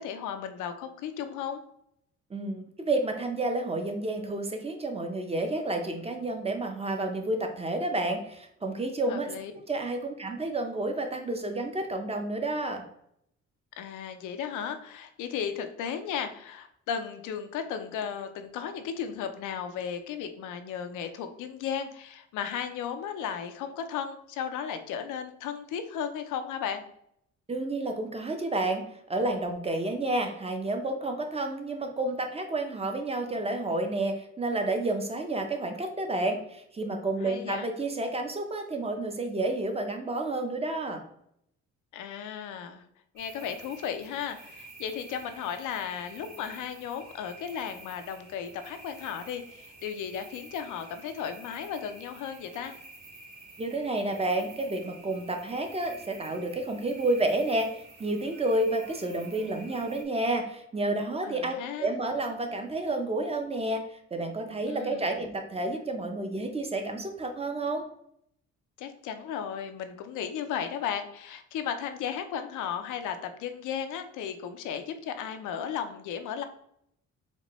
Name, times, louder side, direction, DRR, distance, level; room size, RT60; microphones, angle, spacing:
voice 1, 0.0-1.6 9.1-9.5 13.8-26.8 37.2-37.7 41.9-42.8 43.1-52.7 61.2-61.9 64.7-65.2 68.8-76.4, left 8 dB, 85° left, 8 dB, 0.5 m, -35 dB
voice 2, 2.3-9.3 9.7-12.8 27.5-41.0 53.6-67.9, right 2 dB, 20° right, 4 dB, 0.5 m, -30 dB
sound 1, 43.2-60.0, right 2 dB, 85° right, 1.2 m, -50 dB
4.2 x 2.2 x 3.0 m, 0.72 s
cardioid pair, 90°, 30 cm